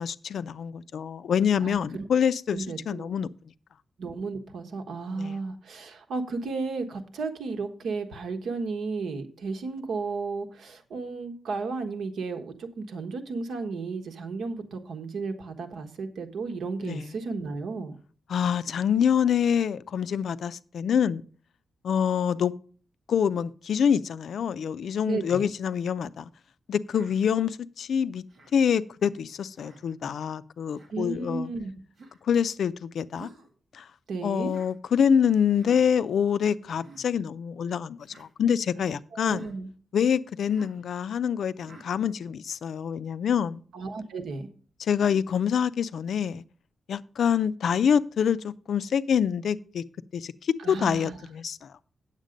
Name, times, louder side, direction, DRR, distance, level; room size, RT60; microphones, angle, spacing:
voice 1, 0.0-3.3 5.2-5.4 16.8-17.1 18.3-21.2 21.8-22.5 23.1-26.3 26.7-28.2 28.5-31.5 32.2-33.3 33.7-33.9 34.2-39.5 39.9-43.6 44.8-46.4 46.9-49.8 50.1-51.7, left 8 dB, 70° left, 0.4 m, -26 dB
voice 2, 1.6-2.1 2.5-3.1 4.0-18.0 25.0-25.5 30.9-31.7 34.1-34.5 39.1-39.7 43.7-44.5 50.6-51.2, right 4 dB, 85° right, 1.3 m, -33 dB
Human voice, 26.9-27.2 28.3-28.6 29.6-29.9 30.7-30.9 31.9-32.2 33.1-33.5 34.4-34.7 35.5-35.9 36.7-37.0 38.0-38.3 39.2-39.5 40.5-40.8 41.6-41.9, right 3 dB, 45° right, 2.3 m, -51 dB
9.0 x 7.3 x 5.1 m
wide cardioid pair, 170°, 0 cm